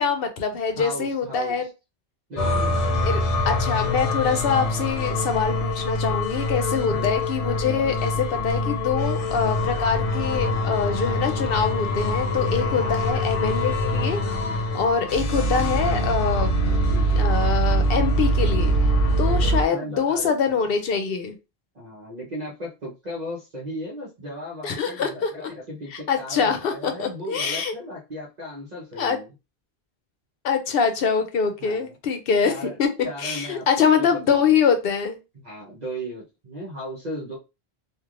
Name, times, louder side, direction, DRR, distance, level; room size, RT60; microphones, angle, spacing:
voice 1, 0.0-1.7 2.9-14.2 14.7-16.5 17.2-18.7 19.2-21.4 24.6-25.3 25.9-27.7 29.0-29.2 30.4-32.5 32.8-32.9 33.2-35.2, left 6 dB, 65° left, 7 dB, 0.8 m, -24 dB
voice 2, 0.8-1.7 2.3-2.7 6.1-6.2 6.8-7.2 12.7-13.0 16.6-17.5 18.9-20.6 21.7-29.3 31.6-31.9 32.4-32.8 33.0-34.4 35.4-37.4, equal, 45° right, -4 dB, 0.9 m, -36 dB
sound 1, 2.4-19.6, equal, 50° left, 0.4 m, -24 dB
3.1 x 2.5 x 2.4 m, 0.27 s
omnidirectional pair, 1.1 m